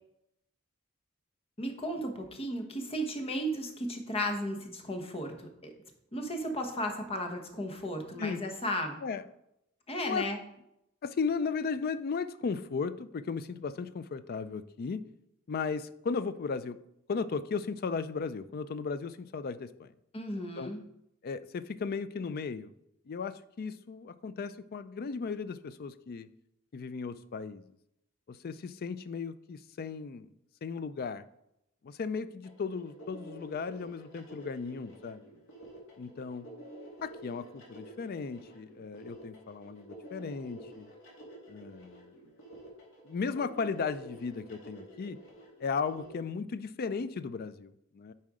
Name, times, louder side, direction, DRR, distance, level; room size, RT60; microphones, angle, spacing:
voice 1, 1.6-5.7 6.1-9.0 9.9-10.4 20.1-20.8, equal, 30° left, 4 dB, 1.0 m, -35 dB
voice 2, 10.0-10.3 11.0-15.0 15.5-16.8 17.1-19.9 20.6-20.7 21.2-22.7 23.1-26.3 26.7-27.6 28.3-30.3 30.6-31.2 31.8-35.2 36.0-36.5 37.0-40.9 41.5-42.1 43.0-45.2 45.6-48.1, left 5 dB, 45° left, 14 dB, 0.4 m, -36 dB
sound 1, 32.4-46.1, right 1 dB, 65° left, 2.3 m, -50 dB
7.5 x 4.3 x 4.9 m, 0.81 s
head